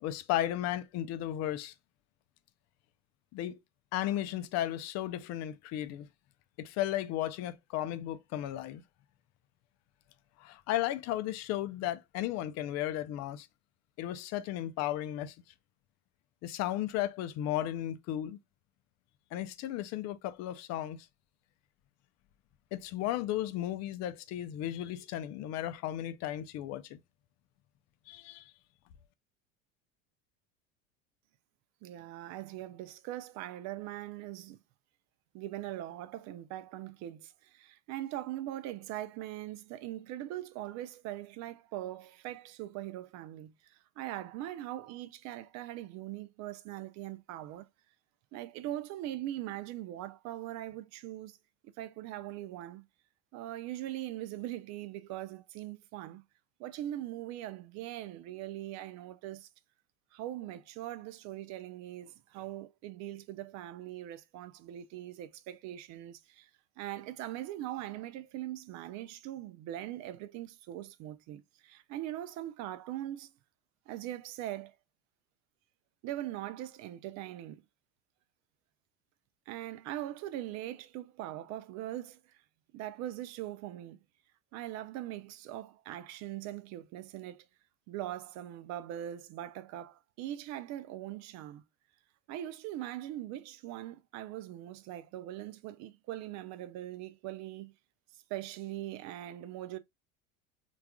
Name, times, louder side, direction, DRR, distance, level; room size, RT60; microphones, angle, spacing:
voice 1, 0.0-1.7 3.3-3.6 3.9-6.1 6.6-8.8 10.4-13.5 14.0-15.3 16.4-18.4 19.3-21.1 22.7-27.0 28.1-28.5, left 13 dB, 45° left, 0.4 m, -34 dB
voice 2, 31.8-34.6 35.3-47.7 48.3-51.4 51.8-52.8 53.3-56.2 56.6-59.5 60.1-66.5 66.8-73.3 73.9-74.8 76.0-77.6 79.5-82.4 82.7-84.0 84.5-87.5 87.9-91.6 92.3-97.7 98.3-99.8, right 13 dB, 45° right, 0.4 m, -41 dB
3.4 x 2.4 x 2.2 m
hypercardioid pair, 90°, 38 cm